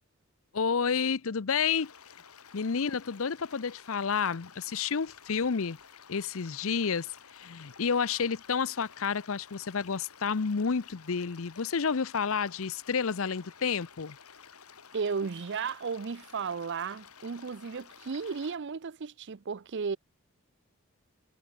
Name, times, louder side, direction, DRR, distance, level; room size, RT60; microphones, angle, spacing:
voice 1, 0.5-1.9 2.5-5.8 6.1-14.2, left 6 dB, 65° left, 0.7 m, -30 dB
sound 1, 1.8-18.6, left 7 dB, 80° left, 2.1 m, -53 dB
voice 2, 14.9-20.0, right 5 dB, 50° right, 0.5 m, -34 dB
head